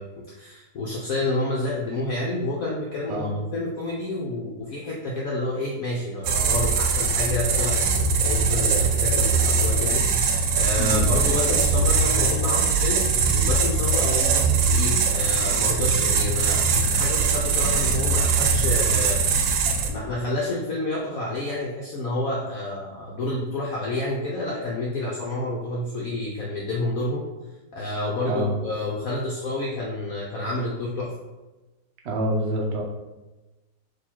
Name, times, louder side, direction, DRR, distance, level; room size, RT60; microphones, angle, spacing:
voice 1, 0.0-13.1 13.3-19.4 19.8-27.2 27.7-31.1, left 2 dB, 65° left, -3 dB, 0.9 m, -29 dB
sound 1, 6.2-19.9, right 4 dB, 85° right, 1.3 m, -21 dB
voice 2, 32.0-32.8, equal, 60° right, -1 dB, 0.7 m, -26 dB
3.9 x 2.8 x 4.3 m, 1.1 s
omnidirectional pair, 2.0 m